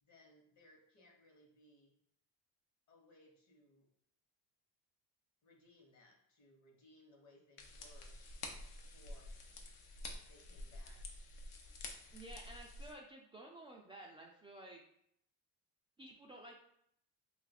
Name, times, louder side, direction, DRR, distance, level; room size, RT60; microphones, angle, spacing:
voice 1, 0.0-2.0 2.9-3.9 5.4-8.2 8.7-9.3 10.3-11.2, left 2 dB, 45° left, 2 dB, 1.1 m, -65 dB
sound 1, 7.6-12.9, left 2 dB, 70° left, 0.8 m, -49 dB
voice 2, 12.1-14.8 16.0-16.6, right 1 dB, 15° right, -2 dB, 0.4 m, -53 dB
2.6 x 2.4 x 4.1 m, 0.71 s
supercardioid pair, 95°, 40 cm